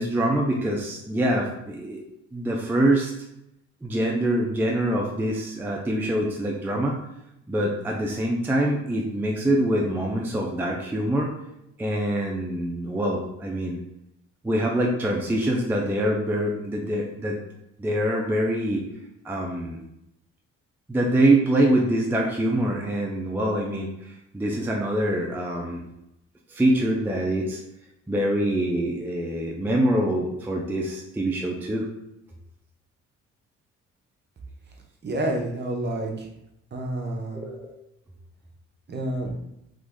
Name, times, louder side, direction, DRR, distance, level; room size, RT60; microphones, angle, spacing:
voice 1, 0.0-2.0 2.3-3.1 3.8-7.0 7.5-11.3 11.8-13.8 14.4-17.4 17.8-18.8 19.2-19.8 20.9-25.8 26.5-27.6 28.1-31.9 37.3-37.7, right 1 dB, 5° right, 0 dB, 0.4 m, -24 dB
voice 2, 35.0-36.3 36.7-37.4 38.9-39.4, right 1 dB, 35° right, 1 dB, 0.7 m, -29 dB
3.0 x 2.5 x 3.5 m, 0.83 s
cardioid pair, 90°, 30 cm